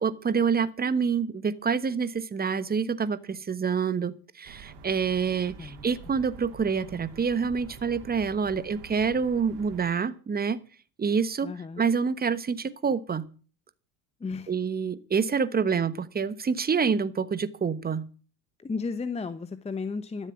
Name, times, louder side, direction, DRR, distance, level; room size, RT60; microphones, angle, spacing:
voice 1, 0.0-10.6 11.0-11.5 11.8-13.3 14.5-18.1, right 6 dB, 20° right, 15 dB, 1.2 m, -27 dB
sound 1, 4.4-9.9, right 5 dB, 60° right, 3.3 m, -47 dB
voice 2, 11.4-11.9 14.2-14.5 18.6-20.3, left 4 dB, 15° left, 12 dB, 0.9 m, -34 dB
13.0 x 7.6 x 8.5 m, 0.38 s
hypercardioid pair, 95°, 47 cm